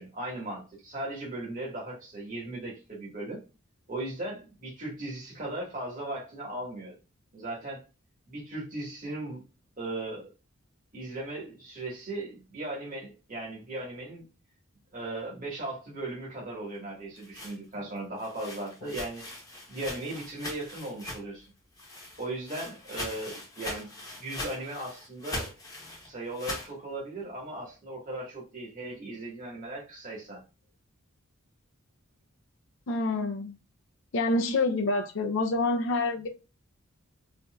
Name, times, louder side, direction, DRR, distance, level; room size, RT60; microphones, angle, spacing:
voice 1, 0.0-3.4 3.9-6.9 7.3-7.8 8.3-9.4 9.8-10.3 10.9-14.3 14.9-19.2 19.7-21.5 22.2-23.9 24.2-25.5 26.0-30.4, right 2 dB, 40° right, 1.5 m, -37 dB
sound 1, 16.9-21.5 21.7-26.7, left 1 dB, 15° left, 0.9 m, -41 dB
voice 2, 32.9-33.6 34.1-36.3, left 2 dB, 60° left, 0.5 m, -27 dB
4.2 x 2.5 x 2.2 m
head